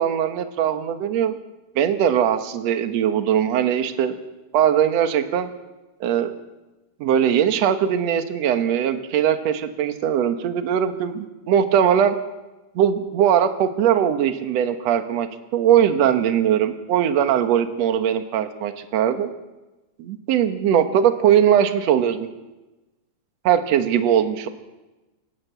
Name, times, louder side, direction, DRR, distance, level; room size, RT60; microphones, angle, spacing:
voice 1, 0.0-1.4 1.7-4.1 4.5-5.5 6.0-6.3 7.0-12.1 12.7-15.3 15.5-19.3 20.0-22.3 23.4-24.5, right 9 dB, 75° right, 8 dB, 1.5 m, -20 dB
28.0 x 12.0 x 8.0 m, 1.1 s
omnidirectional pair, 4.8 m